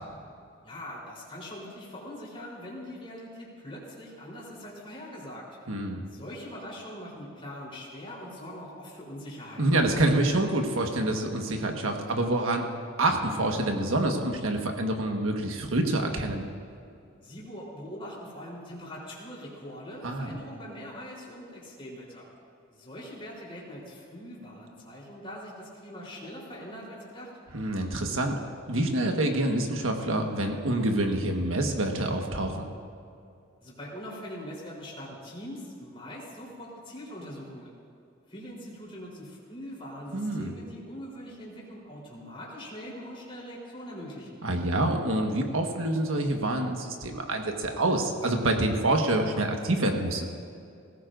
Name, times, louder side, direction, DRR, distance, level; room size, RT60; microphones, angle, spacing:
voice 1, 0.6-5.4 6.0-9.6 17.2-22.2 22.7-27.3 33.6-37.7 38.3-44.4, equal, 25° left, -5 dB, 3.7 m, -42 dB
voice 2, 5.7-6.0 9.6-12.6 13.0-16.5 20.0-20.3 27.5-28.4 28.7-32.7 40.1-40.5 44.4-50.3, right 1 dB, 75° right, 3 dB, 1.4 m, -27 dB
18.5 x 16.5 x 2.6 m, 2.5 s
head